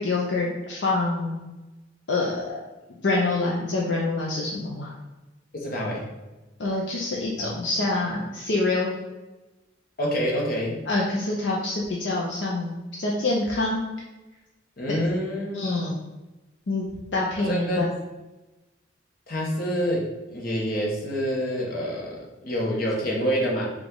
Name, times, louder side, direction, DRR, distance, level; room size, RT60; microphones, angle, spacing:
voice 1, 0.0-1.4 2.1-2.6 3.0-4.9 6.6-8.9 10.9-13.8 15.5-15.9 16.7-16.9 17.1-17.9, left 2 dB, 70° left, -3 dB, 0.6 m, -26 dB
voice 2, 5.5-6.1 7.4-7.5 10.0-10.8 14.8-15.9 17.4-17.9 19.3-23.7, equal, 50° left, -2 dB, 1.1 m, -27 dB
4.9 x 2.4 x 3.8 m, 1.1 s
head